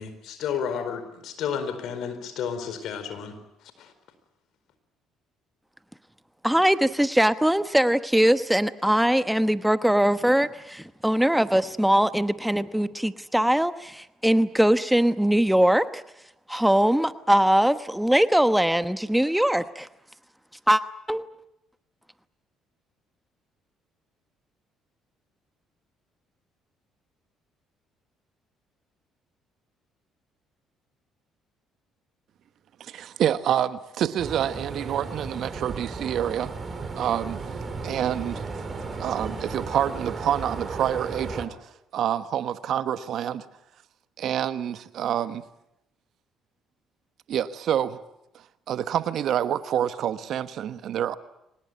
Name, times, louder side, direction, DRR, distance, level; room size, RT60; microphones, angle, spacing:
voice 1, 0.0-3.9, left 7 dB, 70° left, 4.3 m, -32 dB
voice 2, 6.4-16.0 16.5-19.9 20.7-20.8 21.1-21.3, right 1 dB, 5° right, 1.1 m, -21 dB
voice 3, 32.8-36.5 37.0-37.4 37.8-38.4 39.0-41.6 41.9-43.4 44.2-45.4 47.3-48.0 48.7-51.2, right 10 dB, 65° right, 1.3 m, -27 dB
sound 1, 34.2-41.5, right 4 dB, 40° right, 4.1 m, -35 dB
24.0 x 19.5 x 9.5 m
hypercardioid pair, 60°, 0 cm